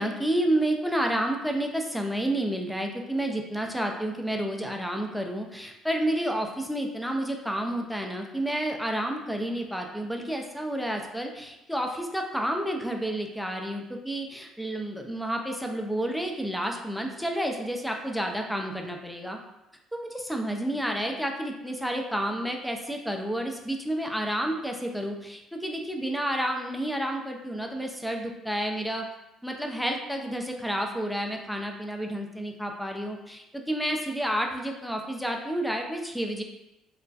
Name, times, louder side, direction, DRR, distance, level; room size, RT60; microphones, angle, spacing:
voice 1, 0.0-19.4 19.9-29.1 29.4-36.4, right 1 dB, ahead, 3 dB, 0.4 m, -30 dB
2.3 x 2.1 x 2.4 m, 0.95 s
hypercardioid pair, 55°, 0 cm